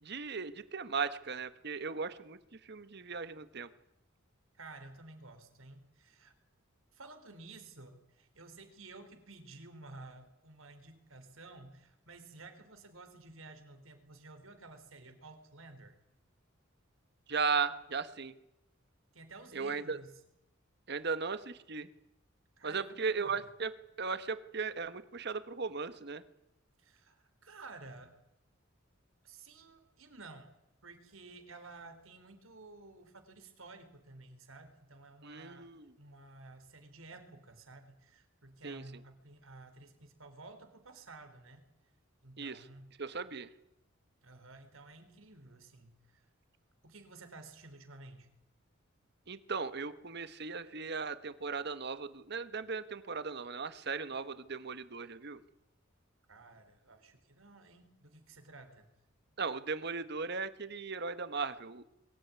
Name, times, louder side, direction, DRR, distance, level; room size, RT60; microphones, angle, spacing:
voice 1, 0.0-3.7 17.3-18.3 19.5-20.0 20.9-21.9 22.6-26.2 35.2-35.9 38.6-38.8 42.4-42.7 43.0-43.5 49.3-55.4 59.4-61.8, right 5 dB, 55° right, 12 dB, 1.3 m, -37 dB
voice 2, 4.5-6.3 6.9-16.0 19.1-20.2 22.6-23.5 26.8-28.2 29.2-30.5 30.8-35.7 36.0-41.7 42.2-42.9 44.2-46.3 46.8-48.3 56.3-58.9, right 3 dB, 90° right, 8 dB, 4.0 m, -53 dB
23.0 x 17.0 x 9.7 m, 0.83 s
head